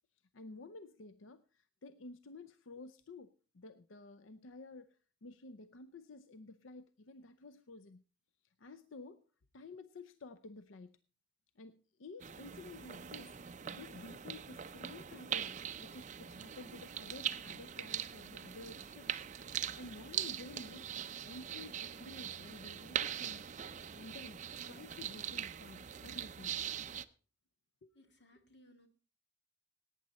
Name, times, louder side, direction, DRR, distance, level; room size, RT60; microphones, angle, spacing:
voice 1, 0.3-8.0 8.4-9.2 9.5-11.0 11.6-13.4 13.7-19.2 19.7-23.5 23.9-26.6 27.8-28.0, left 3 dB, 90° left, 13 dB, 0.6 m, -52 dB
sound 1, 12.2-27.0, right 9 dB, 40° right, 0.5 m, -42 dB
voice 2, 27.9-28.9, left 1 dB, 60° left, 6 dB, 2.4 m, -63 dB
17.5 x 9.2 x 4.2 m, 0.37 s
head